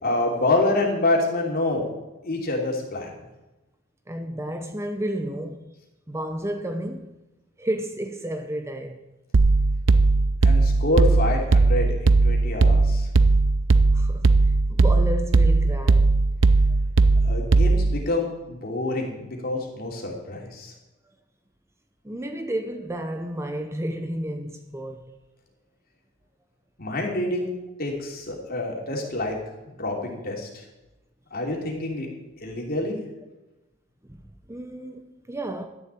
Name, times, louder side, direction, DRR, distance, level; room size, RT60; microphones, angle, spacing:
voice 1, 0.0-1.9 2.2-3.1 10.4-13.1 17.3-20.7 26.8-27.5 27.8-29.4 29.8-30.6 31.3-32.1 32.4-33.0, left 2 dB, 45° left, 3.0 m, -27 dB
voice 2, 4.1-5.7 6.1-7.2 7.6-9.0 13.9-14.3 14.7-16.1 22.0-25.1 34.1-34.2 34.5-35.7, right 1 dB, 15° right, 0.7 m, -31 dB
sound 1, 9.3-18.0, right 3 dB, 65° right, 0.6 m, -18 dB
12.5 x 7.2 x 8.3 m
head